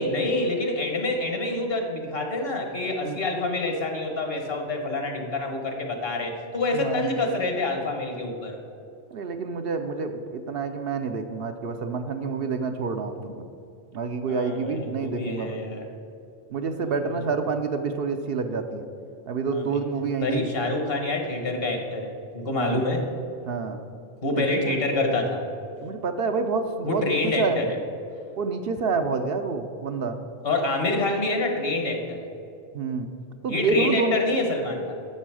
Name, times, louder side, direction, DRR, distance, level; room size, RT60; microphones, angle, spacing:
voice 1, 0.0-8.6 14.3-15.9 16.8-17.1 19.5-19.8 20.2-23.1 24.2-25.4 26.8-27.8 30.4-32.3 33.5-34.9, left 2 dB, 60° left, 3 dB, 1.4 m, -27 dB
voice 2, 6.7-7.1 9.1-13.5 13.9-15.6 16.5-18.8 19.3-20.5 22.6-22.8 23.5-23.8 24.3-24.8 25.8-27.6 28.4-30.2 32.7-33.1 33.4-34.1, right 4 dB, 65° right, 7 dB, 0.8 m, -28 dB
9.8 x 6.8 x 4.8 m, 2.5 s
omnidirectional pair, 1.1 m